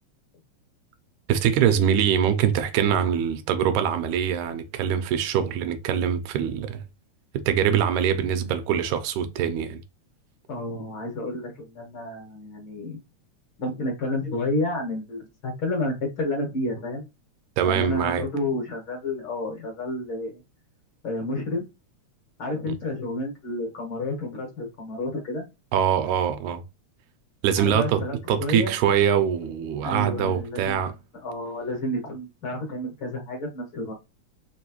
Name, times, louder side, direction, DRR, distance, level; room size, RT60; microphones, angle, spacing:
voice 1, 1.3-6.8 7.3-9.8 17.6-18.2 25.7-26.6 27.4-28.0 28.3-30.9, right 8 dB, 85° right, 2.0 m, -23 dB
voice 2, 10.5-13.0 13.6-17.1 17.6-20.4 21.0-21.7 22.4-25.5 27.6-28.8 29.8-30.9 31.2-33.9, left 1 dB, 55° left, 1.7 m, -30 dB
4.7 x 3.0 x 3.0 m
omnidirectional pair, 3.4 m